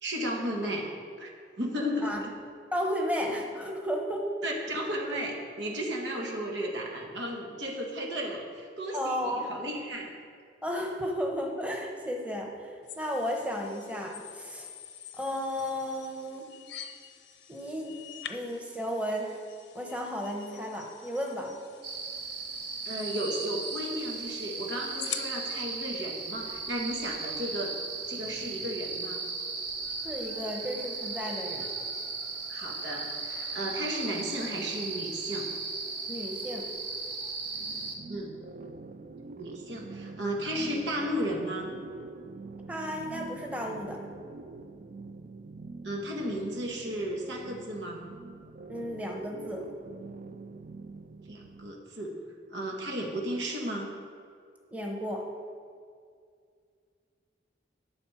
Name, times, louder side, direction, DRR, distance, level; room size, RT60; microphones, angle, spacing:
voice 1, 0.0-0.9 1.2-1.3 1.6-2.3 4.4-10.1 22.8-27.8 28.1-29.3 32.5-35.5 38.1-38.3 39.4-41.7 45.8-48.1 51.3-52.2 52.5-53.9, equal, 90° right, 0 dB, 1.7 m, -34 dB
voice 2, 2.7-4.3 8.9-9.5 10.6-14.7 15.2-16.5 17.5-18.0 18.3-19.4 19.7-21.5 30.0-31.7 36.1-36.8 42.7-44.0 48.7-49.6 54.7-55.3, equal, 10° right, 1 dB, 1.0 m, -33 dB
sound 1, 12.9-25.6, left 9 dB, 80° left, 0.7 m, -46 dB
sound 2, 21.8-38.0, right 4 dB, 65° right, 1.3 m, -36 dB
sound 3, 38.0-51.7, right 3 dB, 45° right, 0.3 m, -45 dB
11.5 x 7.2 x 5.0 m, 2.2 s
head